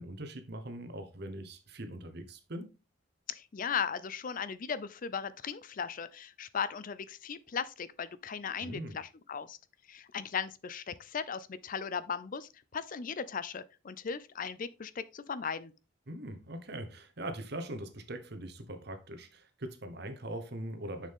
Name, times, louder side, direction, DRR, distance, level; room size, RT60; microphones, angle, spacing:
voice 1, 0.0-2.7 8.6-9.0 16.1-21.1, right 1 dB, 55° right, 1.2 m, -41 dB
voice 2, 3.3-9.6 9.9-15.7, left 6 dB, 45° left, 0.5 m, -37 dB
6.7 x 6.5 x 3.6 m
head